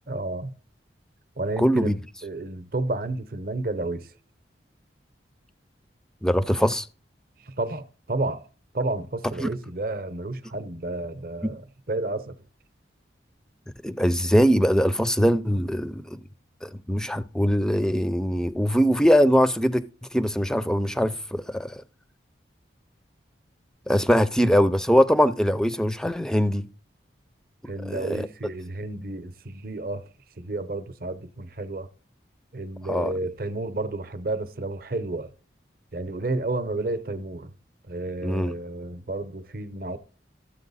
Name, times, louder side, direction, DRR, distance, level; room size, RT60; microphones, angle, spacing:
voice 1, 0.1-0.5 1.4-1.9 2.2-4.1 7.5-8.5 8.7-11.6 11.9-12.3 27.7-30.1 30.4-31.9 32.5-35.3 35.9-37.5 37.9-40.0, right 2 dB, 50° right, 0.7 m, -31 dB
voice 2, 1.6-2.0 6.2-6.9 9.4-9.5 11.4-11.5 13.8-16.2 16.6-19.8 20.1-21.8 23.9-26.7 27.9-28.3 32.9-33.1 38.2-38.5, equal, 5° left, 0.4 m, -22 dB
13.0 x 8.0 x 4.1 m
head